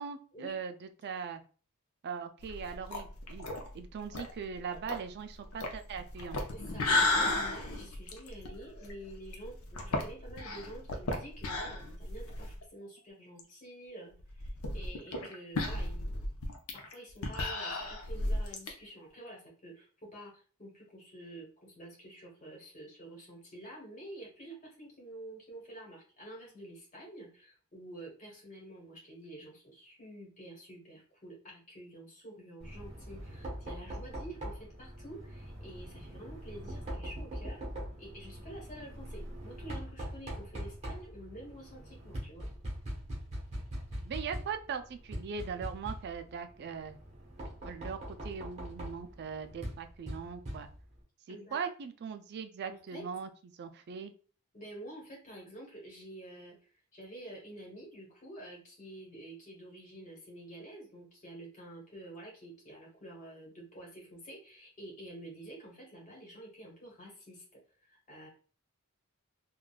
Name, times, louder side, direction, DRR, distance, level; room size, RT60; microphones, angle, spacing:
voice 1, 0.0-1.4 2.0-3.4 3.7-6.4 44.0-47.0 47.6-50.7 51.3-53.3 53.6-54.1, right 6 dB, 50° right, 8 dB, 0.4 m, -40 dB
sound 1, 2.4-12.6 13.0-13.1 13.4-13.5 14.2-18.7, left 2 dB, 70° left, 0.6 m, -34 dB
voice 2, 6.5-16.3 16.7-37.6 38.0-42.5 51.3-51.6 52.7-53.0 54.5-56.5 56.9-67.4 67.9-68.3, right 1 dB, 35° left, -2 dB, 1.2 m, -49 dB
Knock, 32.6-51.0, equal, 30° right, 1.1 m, -42 dB
3.6 x 2.3 x 2.3 m, 0.39 s
head